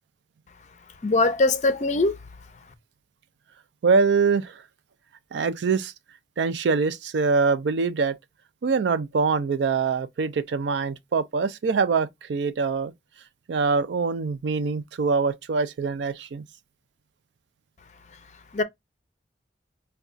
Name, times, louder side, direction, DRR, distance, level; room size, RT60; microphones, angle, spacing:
voice 1, 1.0-2.2 18.5-18.6, left 2 dB, 40° left, 0.5 m, -21 dB
voice 2, 3.8-4.6 5.3-5.9 6.4-8.2 8.6-12.9 13.5-16.4, right 5 dB, 80° right, 0.4 m, -24 dB
4.5 x 2.3 x 2.5 m
head